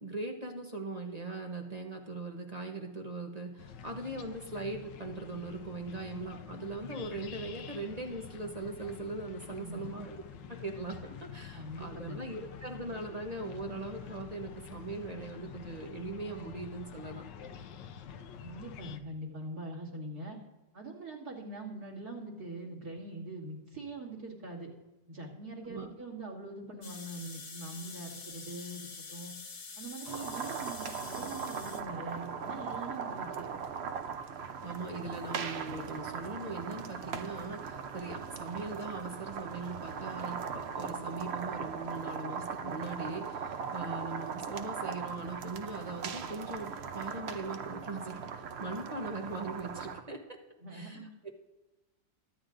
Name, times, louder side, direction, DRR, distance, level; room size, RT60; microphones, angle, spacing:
voice 1, 0.0-10.2 10.5-17.2 25.6-25.9 33.3-33.5 34.6-50.2 50.7-51.3, right 3 dB, 40° right, 2 dB, 0.6 m, -40 dB
sound 1, 3.6-19.0, left 7 dB, 75° left, 1.3 m, -47 dB
voice 2, 9.5-10.0 11.5-12.2 18.4-20.4 20.7-24.7 25.1-29.3 29.8-33.5 50.6-51.1, right 2 dB, 55° right, -2 dB, 2.8 m, -43 dB
sound 2, 26.8-31.8, left 4 dB, 40° left, 0.7 m, -46 dB
sound 3, 30.0-50.0, right 6 dB, 85° right, 0.5 m, -39 dB
23.0 x 9.3 x 2.5 m, 1.1 s
omnidirectional pair, 2.0 m